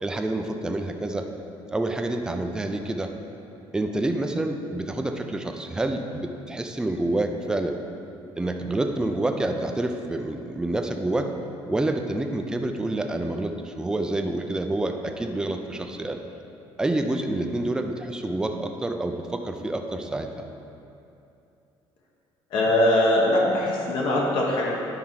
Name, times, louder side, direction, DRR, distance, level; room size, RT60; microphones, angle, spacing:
voice 1, 0.0-1.3 1.7-3.1 3.7-7.8 8.4-11.3 11.7-16.2 16.8-20.4, right 2 dB, 10° right, 5 dB, 0.4 m, -28 dB
voice 2, 22.5-24.7, left 1 dB, 60° left, -2 dB, 1.2 m, -21 dB
9.4 x 4.5 x 5.7 m, 2.7 s
cardioid pair, 170°, 9 cm